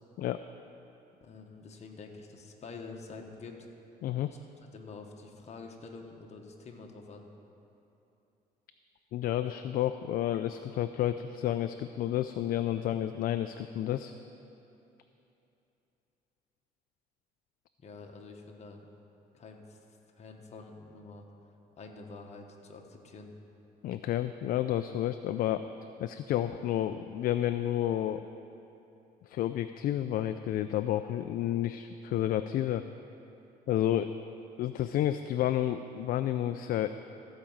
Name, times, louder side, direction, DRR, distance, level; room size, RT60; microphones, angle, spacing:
voice 1, 1.2-3.6 4.7-7.3 17.8-18.9 19.3-19.8 20.1-21.3 21.8-23.3, left 4 dB, 40° left, 2 dB, 1.3 m, -47 dB
voice 2, 4.0-4.3 9.1-14.1 23.8-25.7 26.0-28.3 29.3-32.8 33.7-34.1 34.6-36.9, left 12 dB, 60° left, 10 dB, 0.4 m, -30 dB
15.0 x 5.0 x 7.3 m, 2.9 s
cardioid pair, 110°, 17 cm